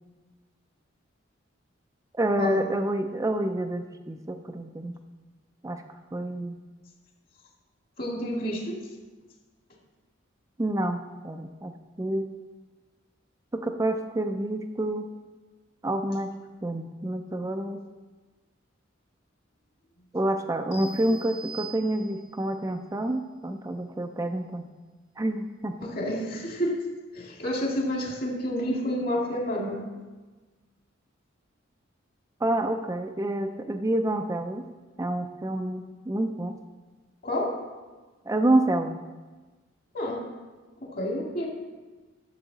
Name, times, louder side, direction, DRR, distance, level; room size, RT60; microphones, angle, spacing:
voice 1, 2.2-5.0 5.6-5.8 6.1-6.6 10.6-11.7 12.0-12.3 13.5-15.1 15.8-16.3 16.6-17.8 20.1-24.7 25.2-25.7 32.4-34.7 35.0-36.6 38.3-39.0, right 1 dB, 15° right, 5 dB, 0.4 m, -28 dB
voice 2, 8.0-8.8 25.8-26.9 27.1-29.8 37.2-37.6 39.9-40.3 40.8-41.5, equal, 45° left, -1 dB, 2.1 m, -29 dB
sound 1, 20.7-22.4, right 3 dB, 75° left, 3.4 m, -42 dB
12.5 x 6.9 x 4.1 m, 1.3 s
head